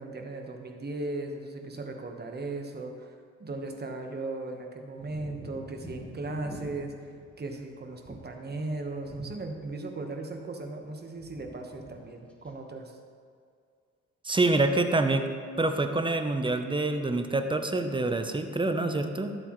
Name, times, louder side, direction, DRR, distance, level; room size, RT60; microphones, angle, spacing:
voice 1, 0.0-3.1 3.4-6.9 7.4-13.0, right 2 dB, 35° right, 3 dB, 1.2 m, -37 dB
sound 1, 5.0-10.0 10.2-10.9 11.1-11.9 12.2-12.6, equal, 5° left, 1.6 m, -47 dB
voice 2, 14.2-19.4, right 2 dB, 15° right, 7 dB, 0.7 m, -26 dB
11.5 x 7.8 x 3.1 m, 2.2 s
cardioid pair, 90°, 30 cm